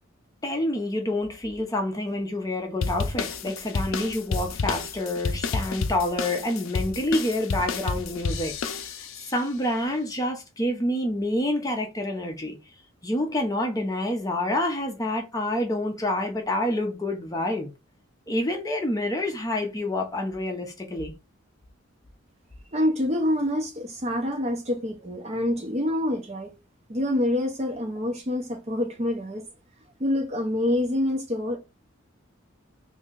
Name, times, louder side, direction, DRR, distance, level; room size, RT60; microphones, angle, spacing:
voice 1, 0.4-8.5 8.8-9.0 9.3-12.6 13.0-17.7 18.3-21.1, left 1 dB, 15° left, 0.6 m, -27 dB
sound 1, 2.8-9.3, left 4 dB, 80° left, 0.5 m, -30 dB
voice 2, 22.7-26.5 26.9-29.4 30.0-31.6, left 1 dB, 30° right, 0.7 m, -26 dB
3.0 x 2.7 x 3.7 m
head